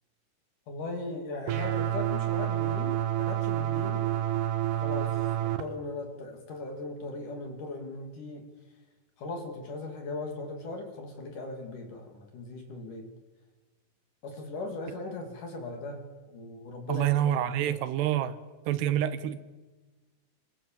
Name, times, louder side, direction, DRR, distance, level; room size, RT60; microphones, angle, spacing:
voice 1, 0.7-4.2 4.8-8.5 9.2-13.1 14.2-17.1 17.5-17.8, left 3 dB, 55° left, 3.9 m, -38 dB
sound 1, 1.5-5.6, right 12 dB, 65° right, 2.4 m, -29 dB
voice 2, 16.9-18.4 18.7-19.4, right 11 dB, 85° right, 3.2 m, -27 dB
25.5 x 23.0 x 7.4 m
omnidirectional pair, 4.8 m